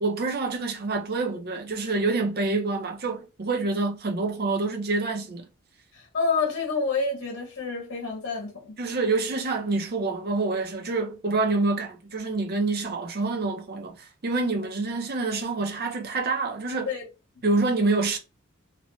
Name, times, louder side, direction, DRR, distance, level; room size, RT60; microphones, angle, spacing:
voice 1, 0.0-5.5 8.8-16.9 17.4-18.2, right 3 dB, 45° right, 0.6 m, -27 dB
voice 2, 5.9-8.8 16.9-17.1, left 4 dB, 60° left, 0.9 m, -28 dB
2.8 x 2.1 x 3.0 m
head